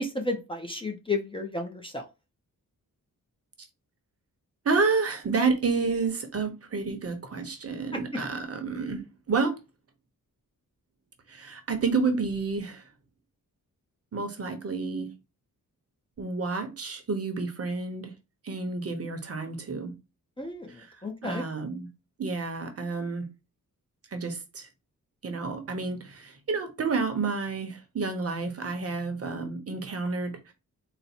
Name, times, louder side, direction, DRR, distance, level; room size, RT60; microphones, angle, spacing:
voice 1, 0.0-2.0 7.9-8.0 20.4-21.4, left 2 dB, 15° left, 0.5 m, -32 dB
voice 2, 4.6-9.6 11.3-12.8 14.1-15.1 16.2-18.1 18.4-19.9 20.8-20.9 21.2-21.9 22.2-23.3 24.1-24.7 25.2-30.5, right 4 dB, 45° right, 0.8 m, -30 dB
4.1 x 2.1 x 4.2 m
wide cardioid pair, 160°, 34 cm